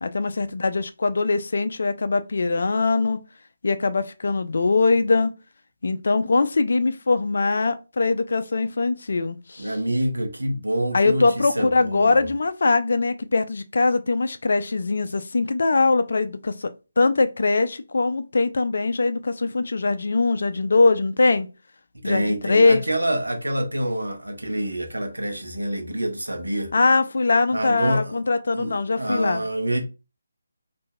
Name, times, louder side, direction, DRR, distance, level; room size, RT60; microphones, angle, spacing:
voice 1, 0.0-3.2 3.6-5.3 5.8-9.7 10.9-21.5 22.0-22.8 26.7-29.4, left 3 dB, 50° left, 0.4 m, -22 dB
voice 2, 9.6-12.3 21.9-26.7 27.5-28.1 28.5-29.8, right 1 dB, 70° right, 0.9 m, -27 dB
4.5 x 2.6 x 2.2 m
figure-of-eight pair, 150°, 0 cm